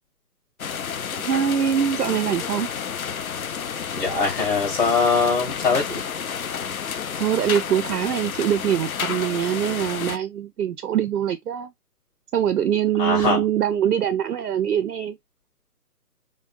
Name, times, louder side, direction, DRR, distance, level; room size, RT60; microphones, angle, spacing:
sound 1, 0.6-10.2, left 7 dB, 60° left, 0.5 m, -30 dB
voice 1, 1.2-2.7 7.2-11.7 12.3-15.2, right 9 dB, 80° right, 0.5 m, -23 dB
voice 2, 3.9-6.0 13.0-13.4, left 4 dB, 35° left, 2.7 m, -22 dB
5.1 x 2.2 x 2.4 m
figure-of-eight pair, 145°, 48 cm